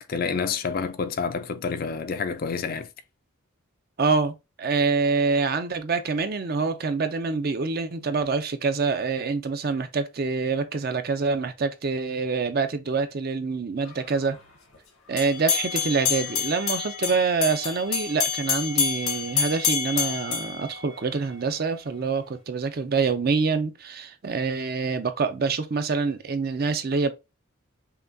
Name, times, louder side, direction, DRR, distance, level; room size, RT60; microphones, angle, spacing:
voice 1, 0.0-2.9, left 5 dB, 45° left, 0.4 m, -28 dB
voice 2, 4.0-14.4 15.1-27.1, right 4 dB, 45° right, 0.5 m, -26 dB
sound 1, 15.2-21.4, left 6 dB, 85° left, 1.2 m, -28 dB
5.7 x 2.3 x 2.5 m
head